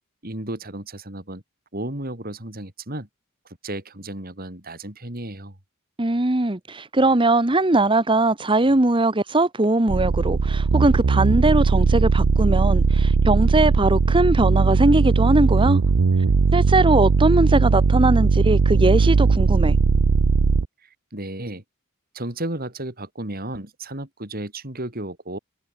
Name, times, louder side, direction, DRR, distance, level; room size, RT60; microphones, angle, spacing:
voice 1, 0.2-1.4 1.7-3.1 3.6-5.6 20.8-21.6 22.1-25.4, right 1 dB, 40° right, 3.9 m, -33 dB
voice 2, 6.0-15.8 16.5-19.7, right 2 dB, 20° right, 1.1 m, -20 dB
sound 1, 9.9-20.6, right 4 dB, 90° right, 0.6 m, -18 dB
head